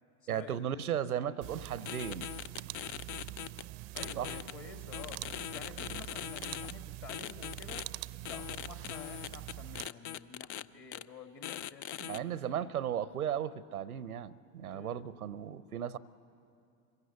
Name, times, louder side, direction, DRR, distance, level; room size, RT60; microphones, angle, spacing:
voice 1, 0.3-2.3 4.2-4.3 12.0-16.0, right 9 dB, 85° right, 18 dB, 0.7 m, -36 dB
sound 1, 1.4-9.9, right 19 dB, 45° right, 0.5 m, -44 dB
sound 2, 1.9-3.6 4.0-4.5 4.9-6.7 7.1-7.8 8.2-10.6 10.9-11.0 11.4-12.2, left 11 dB, 55° left, 0.6 m, -41 dB
voice 2, 3.9-5.2 5.5-7.9 8.3-12.4 14.7-15.2, left 7 dB, 30° left, 7 dB, 1.7 m, -50 dB
25.0 x 16.5 x 8.2 m, 2.5 s
hypercardioid pair, 85°, 43 cm